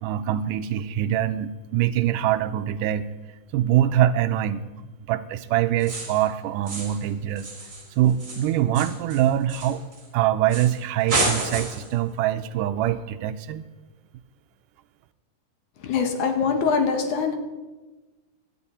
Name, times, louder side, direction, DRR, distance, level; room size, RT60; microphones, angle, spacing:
voice 1, 0.0-3.1 3.5-4.7 5.0-7.5 8.0-9.8 10.1-13.6, right 11 dB, 85° right, 11 dB, 2.2 m, -24 dB
sound 1, 5.8-6.3 6.7-7.1 7.4-10.1 10.5-10.8 11.1-11.9, right 2 dB, 25° right, 2.8 m, -30 dB
voice 2, 15.8-17.4, left 5 dB, 70° left, 5 dB, 2.9 m, -23 dB
18.0 x 12.0 x 4.2 m, 1.2 s
omnidirectional pair, 3.7 m